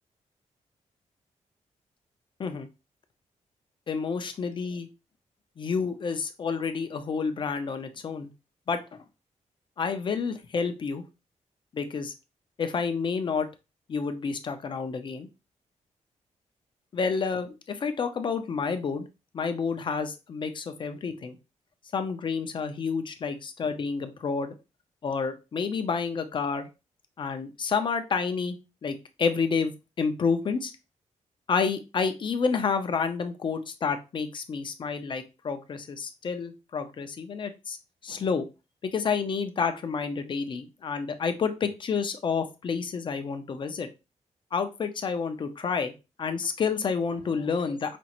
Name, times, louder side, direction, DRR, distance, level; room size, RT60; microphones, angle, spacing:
voice 1, 3.9-4.9 5.6-8.3 8.7-9.0 9.8-11.0 11.7-12.1 12.6-13.5 13.9-15.3 16.9-19.1 19.3-21.4 21.9-24.5 25.0-26.7 27.2-28.6 28.8-29.7 30.0-30.7 31.5-37.8 38.0-38.5 38.8-43.9 44.5-45.9 46.2-48.0, left 5 dB, 40° left, 8 dB, 0.5 m, -29 dB
5.1 x 2.4 x 2.9 m, 0.27 s
wide cardioid pair, 165°, 12 cm